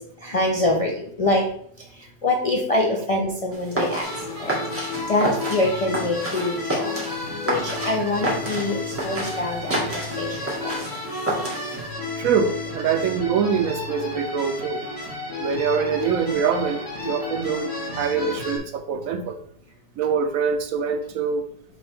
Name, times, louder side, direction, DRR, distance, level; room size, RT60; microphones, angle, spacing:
voice 1, 0.2-1.4 2.2-4.1 4.4-4.5 5.1-6.9 7.4-9.9 10.2-10.7, left 2 dB, 40° left, 0.5 m, -24 dB
sound 1, 3.5-11.9, right 1 dB, 10° right, 1.8 m, -30 dB
sound 2, 4.0-18.6, left 2 dB, 80° left, 3.0 m, -32 dB
voice 2, 12.2-14.9 15.4-19.4 20.0-21.5, right 6 dB, 70° right, 0.9 m, -24 dB
7.1 x 5.1 x 3.4 m
omnidirectional pair, 1.7 m